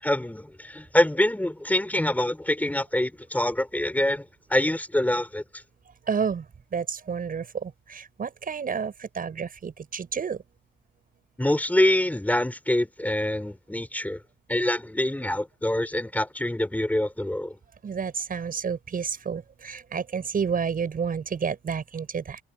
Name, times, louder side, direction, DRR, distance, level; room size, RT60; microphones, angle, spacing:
voice 1, 0.0-4.2 4.5-5.4 11.4-14.2 14.5-17.6, left 1 dB, 10° left, 5.0 m, -25 dB
voice 2, 6.1-6.4 6.7-10.4 17.8-22.4, right 6 dB, 45° right, 6.9 m, -30 dB
cardioid pair, 90°, 20 cm